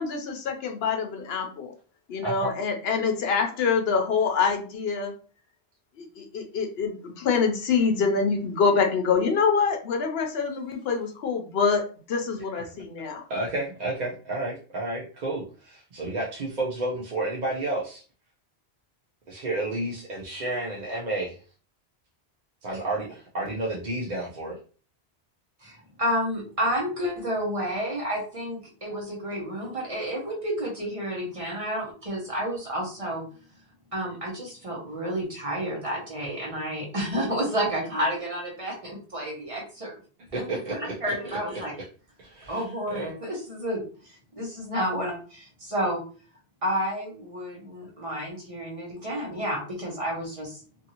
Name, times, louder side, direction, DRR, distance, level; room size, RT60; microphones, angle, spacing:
voice 1, 0.0-1.7 2.1-5.1 6.0-11.8 12.1-13.2, left 5 dB, 70° left, 4 dB, 0.8 m, -25 dB
voice 2, 2.2-2.5 12.5-12.6 13.3-18.0 19.3-21.4 22.6-24.6 40.3-41.6 42.2-42.6 42.9-43.1, right 2 dB, 50° right, -4 dB, 0.6 m, -31 dB
voice 3, 25.6-33.2 33.9-39.9 40.3-41.7 42.5-43.8 44.1-46.0 46.6-50.6, equal, 35° right, -2 dB, 1.0 m, -30 dB
2.6 x 2.6 x 2.8 m, 0.38 s
omnidirectional pair, 1.1 m